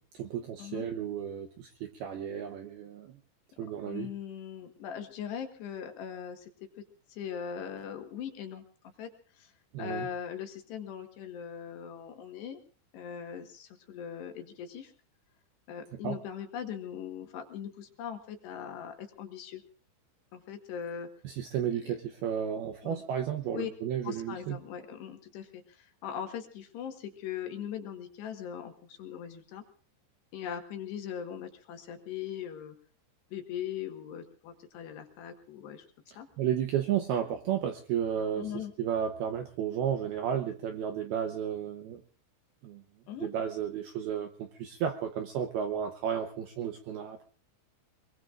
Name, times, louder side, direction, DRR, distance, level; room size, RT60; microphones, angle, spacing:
voice 1, 0.0-3.2 3.6-4.1 9.7-10.1 16.0-16.2 21.2-24.6 36.4-42.0 42.6-42.8 43.2-47.2, right 9 dB, 75° right, 5 dB, 2.3 m, -33 dB
voice 2, 3.8-6.5 7.1-8.6 9.0-9.1 9.4-9.5 9.8-12.6 12.9-14.9 15.7-19.6 20.3-21.1 21.8-21.9 22.8-23.0 23.5-23.7 24.0-29.6 30.3-32.7 33.3-35.9 36.2-36.3 38.4-38.7 43.1-43.3, left 8 dB, 70° left, 6 dB, 3.2 m, -40 dB
25.5 x 22.0 x 2.5 m, 0.40 s
omnidirectional pair, 5.6 m